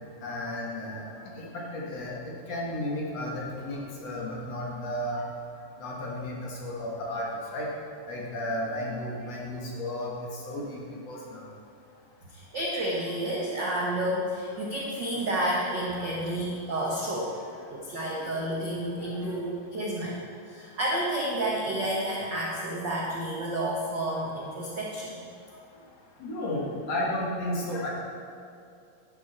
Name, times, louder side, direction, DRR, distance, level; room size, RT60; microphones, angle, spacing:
voice 1, 0.2-1.0 1.4-5.2 5.8-7.7 8.1-11.4 16.0-16.1 19.0-19.1 26.2-27.9, left 1 dB, 50° left, -3 dB, 2.5 m, -33 dB
voice 2, 12.3-17.4 17.7-20.2 20.4-25.3, right 1 dB, 80° right, -4 dB, 1.0 m, -30 dB
12.0 x 11.5 x 4.4 m, 2.5 s
omnidirectional pair, 4.1 m